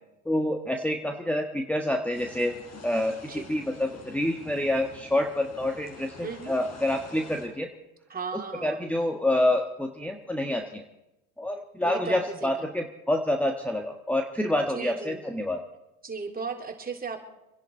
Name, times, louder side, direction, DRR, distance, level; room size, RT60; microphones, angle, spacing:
voice 1, 0.2-2.5 2.8-7.7 8.3-10.8 11.4-15.6, left 1 dB, 5° left, 3 dB, 1.4 m, -27 dB
sound 1, 2.1-7.5, left 3 dB, 40° left, 5.8 m, -47 dB
voice 2, 6.2-6.5 8.1-8.9 11.8-12.5 14.7-15.2 16.0-17.2, right 5 dB, 20° right, 3 dB, 3.0 m, -36 dB
26.5 x 10.5 x 4.5 m, 0.93 s
supercardioid pair, 105°, 42 cm